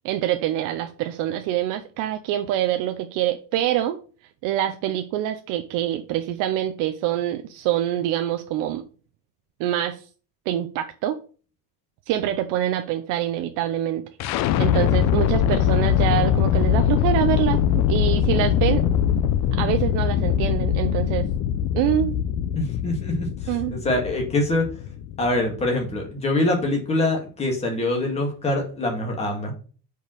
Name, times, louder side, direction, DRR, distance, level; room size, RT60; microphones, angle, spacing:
voice 1, 0.0-4.0 4.4-8.8 9.6-10.0 10.5-11.2 12.1-14.0 14.3-17.6 17.9-18.8 19.5-21.3 21.7-22.2 23.5-23.8, right 12 dB, 60° right, 0.7 m, -25 dB
sound 1, 14.2-26.1, left 10 dB, 50° left, 0.5 m, -22 dB
voice 2, 22.5-24.7 25.2-29.5, left 2 dB, 15° left, 1.9 m, -24 dB
5.3 x 4.7 x 6.3 m
cardioid pair, 180°, 36 cm